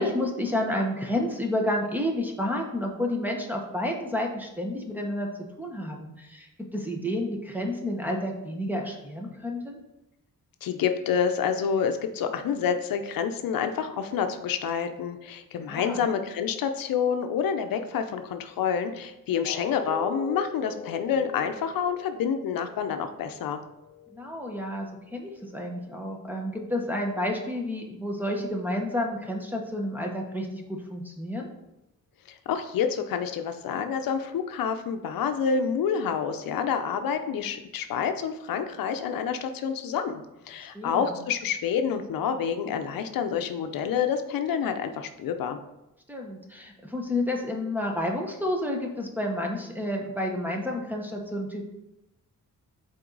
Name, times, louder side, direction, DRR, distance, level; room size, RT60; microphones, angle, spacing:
voice 1, 0.0-5.3 5.6-9.8 15.6-16.0 24.1-31.5 40.6-41.2 46.1-51.6, left 1 dB, 5° right, 0 dB, 1.0 m, -30 dB
voice 2, 10.6-23.6 32.5-45.6, left 7 dB, 85° left, 7 dB, 0.6 m, -28 dB
sound 1, 19.4-25.4 25.8-26.0 26.5-26.6, left 3 dB, 30° left, 0.6 m, -41 dB
7.5 x 4.4 x 3.9 m, 0.90 s
wide cardioid pair, 130°, 34 cm